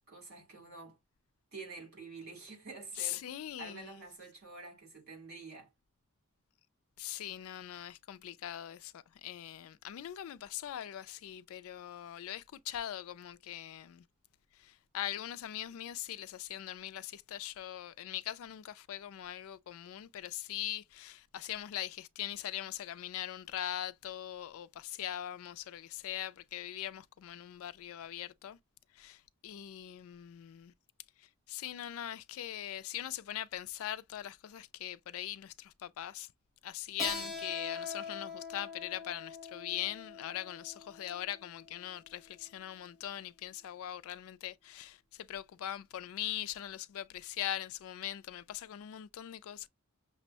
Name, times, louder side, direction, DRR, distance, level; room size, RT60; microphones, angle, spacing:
voice 1, 0.1-1.0 1.5-3.2 3.6-5.7, right 4 dB, 50° right, 2.9 m, -48 dB
voice 2, 3.0-4.0 7.0-14.0 14.5-28.6 28.9-30.7 31.2-36.3 36.6-49.7, left 12 dB, 65° left, 0.3 m, -41 dB
Keyboard (musical), 37.0-42.3, left 3 dB, ahead, 0.8 m, -43 dB
5.9 x 2.1 x 2.7 m
head